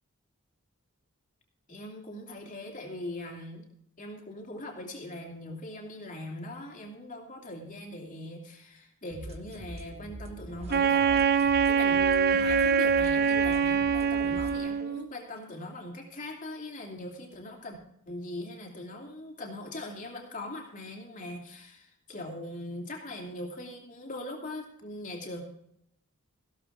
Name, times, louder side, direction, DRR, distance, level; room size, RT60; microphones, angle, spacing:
voice 1, 1.7-3.7 4.0-17.8 18.1-25.4, left 1 dB, 35° left, 0 dB, 2.9 m, -41 dB
sound 1, 9.1-14.6, right 1 dB, 30° right, 1.0 m, -43 dB
Wind instrument woodwind instrument, 10.7-15.1, right 6 dB, 45° right, 0.6 m, -24 dB
15.0 x 13.0 x 3.7 m, 0.73 s
head